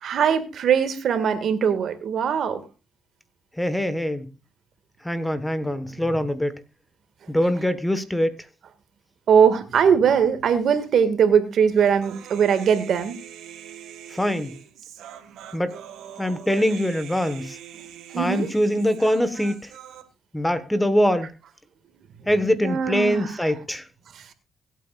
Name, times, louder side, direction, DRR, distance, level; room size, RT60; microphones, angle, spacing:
voice 1, 0.0-2.6 5.9-6.2 9.3-13.2 18.1-18.5 22.6-23.4 24.1-24.3, right 7 dB, 65° right, 2.0 m, -21 dB
voice 2, 3.6-4.3 5.0-6.6 7.3-8.4 14.1-14.5 15.5-15.7 16.2-17.6 18.2-19.7 20.3-21.3 22.3-23.9, equal, 5° left, 1.4 m, -23 dB
Human voice, 12.0-20.0, right 9 dB, 80° right, 1.8 m, -43 dB
24.0 x 9.1 x 2.5 m
cardioid pair, 90°, 0 cm